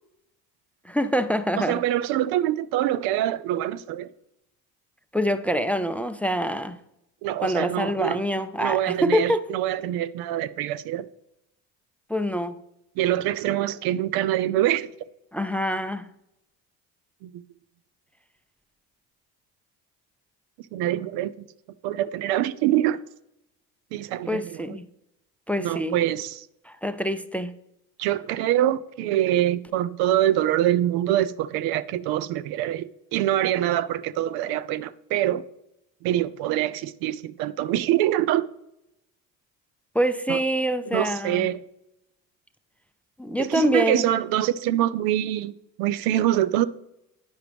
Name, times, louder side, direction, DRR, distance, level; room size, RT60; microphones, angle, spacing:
voice 1, 0.9-1.8 5.1-6.8 7.4-9.5 12.1-12.6 15.3-16.1 24.3-24.9 25.5-26.0 26.7-27.5 39.9-41.5 43.2-44.1, equal, 5° left, 0.4 m, -25 dB
voice 2, 1.6-4.1 7.2-8.2 8.6-11.1 13.0-14.9 17.2-17.4 20.7-21.5 21.8-23.0 23.9-24.8 25.6-26.5 28.0-35.4 36.0-38.5 40.3-40.4 40.9-41.6 43.4-46.7, right 13 dB, 80° right, 0.5 m, -25 dB
9.3 x 5.9 x 3.4 m
supercardioid pair, 70°, 36 cm